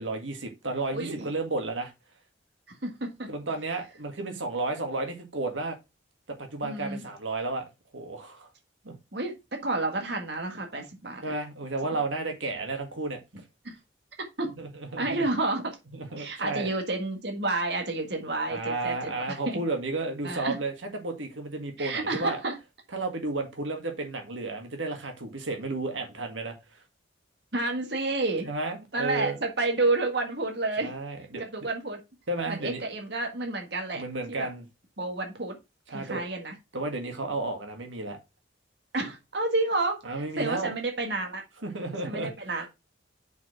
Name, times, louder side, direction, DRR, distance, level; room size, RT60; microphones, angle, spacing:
voice 1, 0.0-1.9 3.3-5.8 6.3-7.7 7.9-8.5 8.8-8.9 11.2-13.2 14.6-15.3 15.9-16.7 18.5-22.4 22.9-26.5 28.4-29.4 30.8-31.4 32.3-32.8 33.9-34.7 35.9-36.2 36.7-38.2 40.0-40.7 41.6-42.3, right 2 dB, 85° right, 1.9 m, -32 dB
voice 2, 0.9-1.3 2.8-3.1 6.6-7.0 9.1-11.3 13.6-13.8 14.4-14.5 15.0-15.8 16.2-19.6 20.2-20.6 21.8-22.5 27.5-28.5 28.9-30.9 31.4-32.0 32.5-34.0 34.3-34.5 35.0-35.6 35.9-36.5 38.9-41.4 42.0-42.7, right 2 dB, 60° right, 1.7 m, -30 dB
5.8 x 4.8 x 5.9 m
head